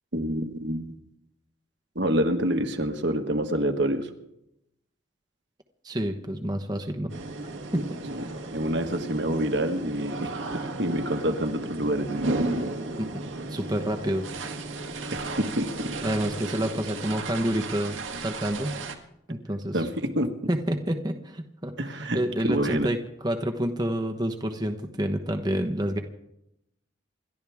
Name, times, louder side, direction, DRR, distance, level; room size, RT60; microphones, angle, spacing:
voice 1, 0.1-0.9 1.9-4.1 8.1-12.1 15.1-15.9 19.7-20.3 21.8-22.9, right 1 dB, 60° right, 5 dB, 1.6 m, -27 dB
voice 2, 5.8-7.1 7.7-7.8 13.0-13.1 13.5-14.2 16.0-18.7 19.3-19.8 20.5-21.7 22.1-23.0 23.2-26.0, right 1 dB, 20° right, 5 dB, 1.1 m, -28 dB
sound 1, 7.1-19.0, right 2 dB, 80° right, 1.9 m, -34 dB
28.5 x 12.5 x 3.6 m, 0.80 s
head